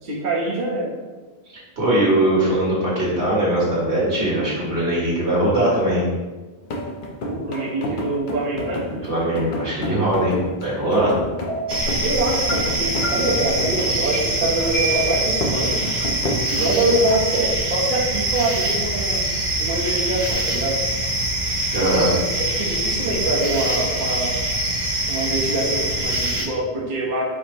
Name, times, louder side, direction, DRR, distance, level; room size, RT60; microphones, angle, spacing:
voice 1, 0.0-0.9 7.3-8.9 10.9-11.1 12.0-15.8 16.5-19.2 19.6-20.8 21.8-24.4 25.1-27.3, right 1 dB, 50° right, -5 dB, 0.9 m, -24 dB
voice 2, 1.8-6.1 8.9-10.3 10.6-11.2 21.7-22.1, right 1 dB, 80° right, -7 dB, 2.0 m, -20 dB
sound 1, 6.6-17.6, left 1 dB, 60° left, 0.7 m, -31 dB
sound 2, 10.9-11.0 11.5-11.9 12.5-12.6 13.0-13.5 14.1-14.2 14.7-15.3, right 4 dB, 75° left, 1.3 m, -27 dB
sound 3, 11.7-26.5, right 1 dB, 35° right, 0.4 m, -24 dB
5.2 x 2.1 x 4.2 m, 1.2 s
omnidirectional pair, 1.1 m